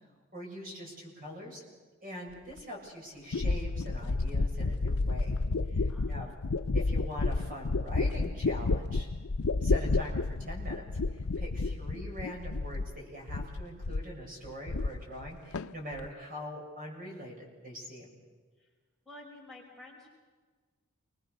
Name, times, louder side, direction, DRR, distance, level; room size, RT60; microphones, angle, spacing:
voice 1, 0.3-1.6 2.0-5.3 5.7-6.3 6.7-9.1 9.6-10.8 11.1-18.1, equal, 40° right, 0 dB, 6.9 m, -43 dB
sound 1, 2.6-2.7 3.3-13.0 13.3-14.2 14.4-15.3 15.5-16.1, left 3 dB, 85° left, 0.6 m, -31 dB
voice 2, 5.9-6.3 18.6-18.7 19.1-20.1, left 2 dB, ahead, -4 dB, 5.4 m, -51 dB
28.5 x 22.5 x 6.8 m, 1.4 s
head